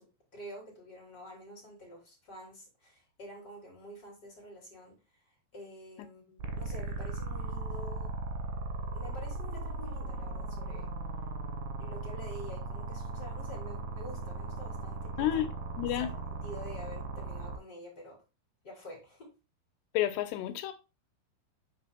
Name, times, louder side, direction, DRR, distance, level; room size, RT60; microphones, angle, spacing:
voice 1, 0.3-4.9 5.5-8.1 8.9-10.9 11.8-15.3 15.9-16.1 16.4-18.2 18.6-19.3, equal, 25° left, 3.5 m, -48 dB
sound 1, 6.4-17.6, right 3 dB, 70° right, 2.9 m, -37 dB
voice 2, 15.2-16.1 19.9-20.7, left 12 dB, 90° left, 2.8 m, -31 dB
8.7 x 6.2 x 2.2 m
omnidirectional pair, 4.8 m